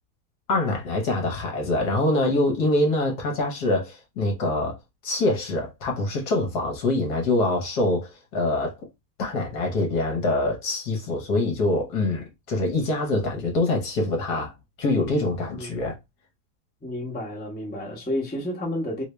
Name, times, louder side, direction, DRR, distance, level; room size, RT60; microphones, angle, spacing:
voice 1, 0.5-4.8 5.0-8.8 9.2-14.5 14.8-15.9, left 2 dB, 60° left, 1.4 m, -24 dB
voice 2, 16.8-19.0, left 1 dB, 10° left, 0.6 m, -31 dB
3.2 x 2.7 x 3.2 m
omnidirectional pair, 2.2 m